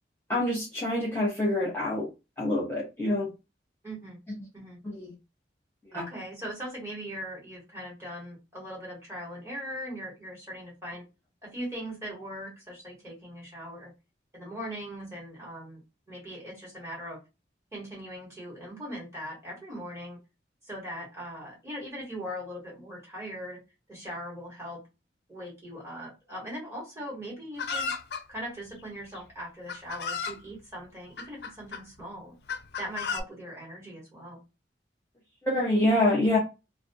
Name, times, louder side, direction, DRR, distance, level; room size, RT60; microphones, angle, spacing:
voice 1, 0.3-2.1 2.4-3.3 4.9-5.1 5.9-6.0 35.4-36.4, left 1 dB, 10° left, 0.7 m, -26 dB
voice 2, 3.8-4.2 4.5-4.8 5.9-11.1 11.4-13.9 14.3-17.2 17.7-20.2 20.6-23.6 23.9-24.8 25.3-27.9 28.3-32.3 32.8-34.4, equal, 15° right, 1.3 m, -40 dB
Chicken rooster, 27.6-28.2 29.2-29.3 29.7-30.4 31.2-31.8 32.5-33.2, left 5 dB, 65° left, 0.4 m, -33 dB
2.5 x 2.2 x 2.6 m
head